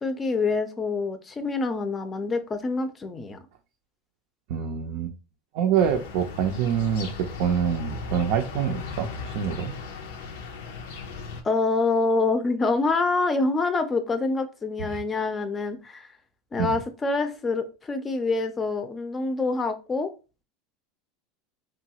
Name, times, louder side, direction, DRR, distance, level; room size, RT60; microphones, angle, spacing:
voice 1, 0.0-3.4 11.4-16.1 16.5-20.1, left 3 dB, 20° left, 8 dB, 0.5 m, -26 dB
voice 2, 4.5-5.1 5.5-7.1 7.4-9.7 14.8-15.0 16.6-16.7, right 8 dB, 70° right, 3 dB, 0.4 m, -26 dB
sound 1, 5.8-11.4, left 4 dB, 90° left, 0.5 m, -37 dB
2.9 x 2.3 x 2.8 m, 0.31 s
supercardioid pair, 120°, 0 cm